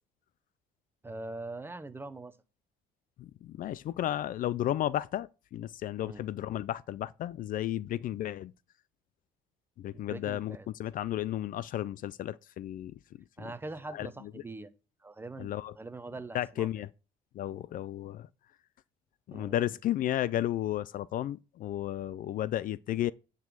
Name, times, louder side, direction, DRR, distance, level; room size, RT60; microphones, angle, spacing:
voice 1, 1.0-2.4 6.0-6.3 9.9-10.7 13.4-14.7 15.0-16.7 19.3-19.6, right 2 dB, 15° right, 0.8 m, -42 dB
voice 2, 3.2-8.5 9.8-12.9 13.9-14.1 15.4-15.7 16.3-16.9 17.4-18.3 19.3-23.1, left 12 dB, 55° left, 0.4 m, -33 dB
9.6 x 4.0 x 6.2 m
cardioid pair, 110°, 17 cm